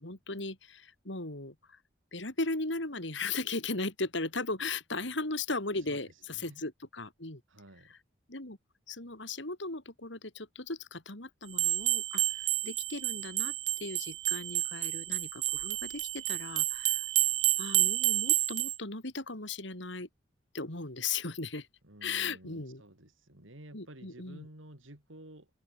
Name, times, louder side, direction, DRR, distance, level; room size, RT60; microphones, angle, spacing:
voice 1, 0.0-1.8 2.1-7.4 7.9-8.0 8.3-8.6 8.9-12.2 12.6-13.5 13.8-17.1 17.6-20.1 20.5-21.7 22.0-22.8 23.7-24.5, left 3 dB, 70° left, 3.8 m, -37 dB
voice 2, 5.9-6.6 7.5-7.9 21.8-25.5, right 1 dB, 85° right, 4.7 m, -52 dB
sound 1, 11.5-18.8, right 16 dB, 65° right, 0.7 m, -30 dB
open air
head